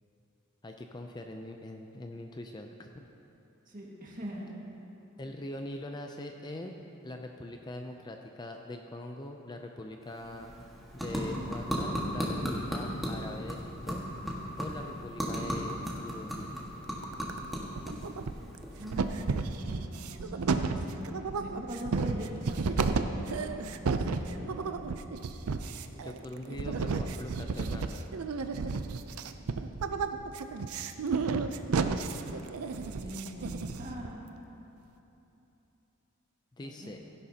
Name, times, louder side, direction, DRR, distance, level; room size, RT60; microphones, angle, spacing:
voice 1, 0.6-3.0 5.2-10.5 10.9-14.0 14.6-16.5 25.9-28.0 31.8-32.1 32.6-33.2 36.6-37.0, left 1 dB, 20° left, 4 dB, 0.4 m, -43 dB
voice 2, 3.7-4.5 18.8-19.1 19.5-21.0 21.4-24.5 33.0-34.2 36.6-36.9, right 1 dB, 40° right, -3 dB, 1.8 m, -42 dB
sound 1, 10.0-19.5, equal, ahead, 1.6 m, -36 dB
sound 2, 16.9-17.5 17.8-18.6 18.9-34.1, right 4 dB, 90° right, 0.5 m, -32 dB
16.5 x 11.0 x 2.8 m, 3.0 s
head